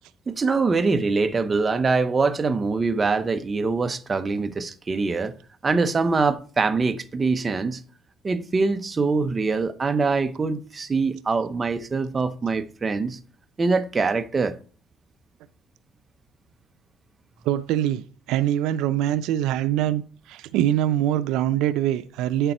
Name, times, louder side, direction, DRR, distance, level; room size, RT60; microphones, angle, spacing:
voice 1, 0.3-5.3 5.6-7.8 8.2-13.2 13.6-14.6, right 4 dB, 20° right, 0.7 m, -23 dB
voice 2, 17.4-20.0 20.3-22.5, right 12 dB, 80° right, 0.5 m, -23 dB
8.7 x 6.8 x 4.3 m
cardioid pair, 140°, 0 cm